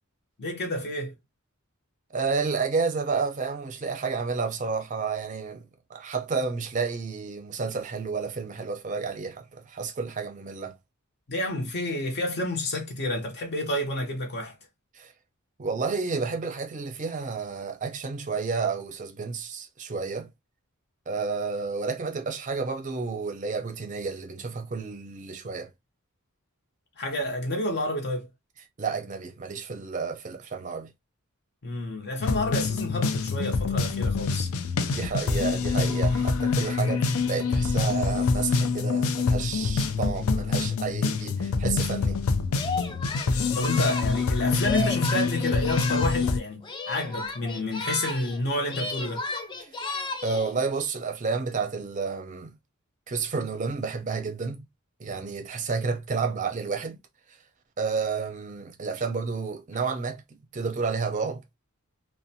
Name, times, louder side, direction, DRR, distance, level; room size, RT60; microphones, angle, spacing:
voice 1, 0.4-1.1 11.3-14.5 27.0-28.3 31.6-34.5 43.5-49.2, left 1 dB, 50° left, 0.7 m, -29 dB
voice 2, 2.1-10.8 14.9-15.1 15.6-20.3 21.1-25.7 28.8-30.9 34.8-42.2 49.6-49.7 50.2-52.5 53.1-54.6 55.0-57.0 57.8-61.4, right 4 dB, 35° right, 0.5 m, -31 dB
sound 1, 32.2-46.4, left 4 dB, 80° left, 0.4 m, -26 dB
Singing, 42.5-46.3 46.6-48.4 48.6-50.5, left 2 dB, 20° left, 0.4 m, -34 dB
2.5 x 2.1 x 2.6 m
head